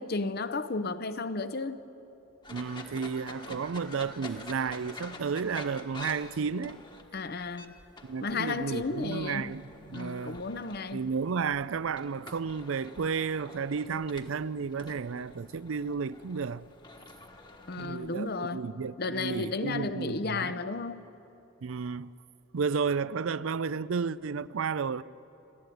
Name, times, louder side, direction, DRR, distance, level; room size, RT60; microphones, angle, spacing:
voice 1, 0.0-1.8 7.1-7.7 8.2-9.5 9.9-11.0 17.7-18.7 19.0-21.0, left 3 dB, 50° left, 0.8 m, -33 dB
sound 1, 2.4-18.4, left 2 dB, 25° left, 1.3 m, -48 dB
voice 2, 2.5-6.8 8.0-10.4 10.9-16.7 17.8-20.6 21.6-22.1 22.5-25.0, right 5 dB, 85° right, 0.5 m, -32 dB
29.0 x 12.5 x 9.3 m
head